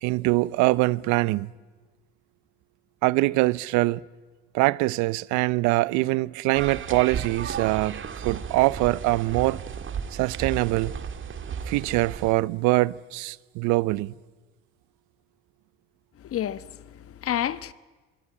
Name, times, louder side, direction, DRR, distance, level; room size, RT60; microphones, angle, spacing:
voice 1, 0.0-1.5 3.0-4.0 4.5-9.6 10.1-10.9 11.7-14.1, right 21 dB, 70° right, 0.8 m, -23 dB
sound 1, 6.5-12.3, right 7 dB, 40° right, 2.0 m, -34 dB
voice 2, 16.2-17.7, left 11 dB, 45° left, 1.2 m, -30 dB
24.5 x 23.5 x 8.7 m
hypercardioid pair, 65°, 31 cm